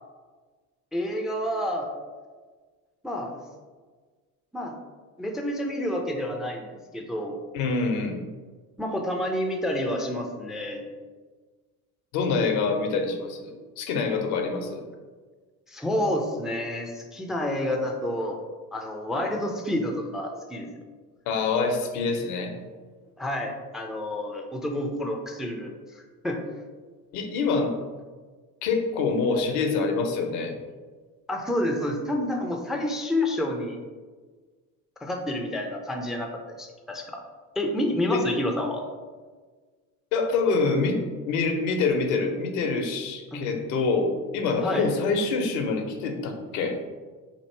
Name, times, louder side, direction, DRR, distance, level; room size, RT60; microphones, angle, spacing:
voice 1, 0.9-1.9 3.0-3.3 4.5-4.7 5.2-6.7 6.9-7.4 8.8-10.8 15.7-18.4 18.7-20.7 23.2-26.4 31.3-33.8 35.0-37.2 37.6-38.8 43.3-43.4 44.6-44.9, left 1 dB, ahead, 2 dB, 0.4 m, -29 dB
voice 2, 7.5-8.2 12.1-14.8 21.3-22.5 27.1-27.7 28.6-30.6 38.1-38.3 40.1-46.8, left 4 dB, 70° left, 4 dB, 0.7 m, -26 dB
3.0 x 2.6 x 4.4 m, 1.4 s
hypercardioid pair, 60°, 45 cm